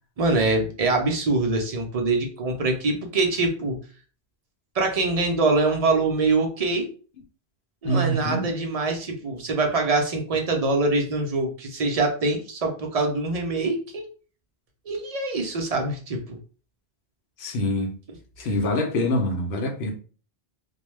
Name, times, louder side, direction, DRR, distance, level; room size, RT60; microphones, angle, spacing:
voice 1, 0.2-3.8 4.7-6.9 7.8-14.1 14.9-16.4, right 3 dB, 45° right, 0.6 m, -24 dB
voice 2, 7.8-8.4 17.4-17.9 18.4-19.9, left 1 dB, 80° left, 0.9 m, -25 dB
2.3 x 2.2 x 3.1 m
omnidirectional pair, 1.1 m